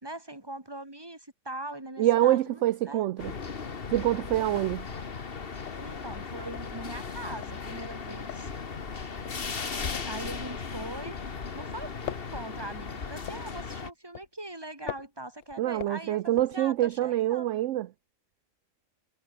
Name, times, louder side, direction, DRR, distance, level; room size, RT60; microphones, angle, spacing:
voice 1, 0.0-3.0 5.8-8.5 10.1-11.1 11.5-16.2 16.5-17.5, right 1 dB, 15° right, 2.9 m, -41 dB
voice 2, 2.0-3.3 3.9-4.9 15.6-17.9, right 14 dB, 70° right, 0.9 m, -26 dB
sound 1, 3.2-3.7 4.0-4.1 4.4-11.5 11.7-17.1, left 12 dB, 70° left, 1.0 m, -44 dB
sound 2, 3.2-13.9, left 5 dB, 45° left, 1.6 m, -37 dB
omnidirectional pair, 1.4 m